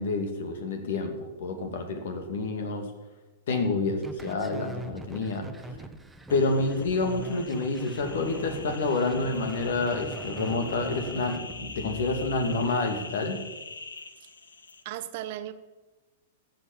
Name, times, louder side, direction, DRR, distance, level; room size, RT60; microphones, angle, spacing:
voice 1, 0.0-2.9 3.5-5.5 6.3-13.4, left 3 dB, 65° left, 6 dB, 2.4 m, -28 dB
sound 1, 4.0-12.7, right 2 dB, 5° right, 1.1 m, -42 dB
sound 2, 6.3-14.8, left 4 dB, 80° left, 1.2 m, -43 dB
voice 2, 14.8-15.5, right 12 dB, 55° right, 12 dB, 1.0 m, -36 dB
14.0 x 7.9 x 7.3 m, 1.1 s
figure-of-eight pair, 105°, 0 cm